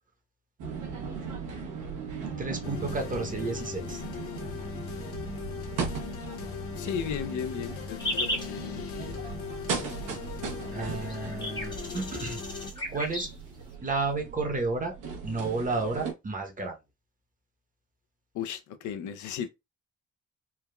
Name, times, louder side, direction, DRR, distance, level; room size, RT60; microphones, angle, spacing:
sound 1, 0.6-16.1, right 5 dB, 85° right, 0.9 m, -38 dB
voice 1, 2.4-4.0 10.7-12.4 12.9-13.3 13.8-14.9 15.2-16.8, right 3 dB, 25° right, 0.8 m, -31 dB
sound 2, 2.6-12.7, left 6 dB, 50° left, 0.8 m, -39 dB
voice 2, 6.8-9.2 18.3-19.5, left 8 dB, 75° left, 0.5 m, -35 dB
sound 3, 8.0-8.5 10.7-10.8 11.0-13.3, left 1 dB, 15° left, 0.7 m, -34 dB
3.3 x 2.2 x 2.2 m
cardioid pair, 90°, 30 cm